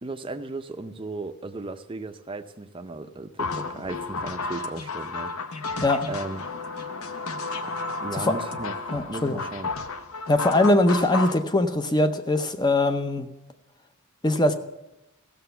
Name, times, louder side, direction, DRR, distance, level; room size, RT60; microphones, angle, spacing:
voice 1, 0.0-5.7 6.1-6.4 8.0-9.7, right 2 dB, 25° right, 8 dB, 0.5 m, -36 dB
sound 1, 3.4-11.4, left 3 dB, 70° left, 0.7 m, -32 dB
voice 2, 8.9-9.4 10.3-13.3 14.2-14.5, left 2 dB, 20° left, 9 dB, 0.6 m, -22 dB
15.0 x 6.9 x 6.7 m, 0.97 s
head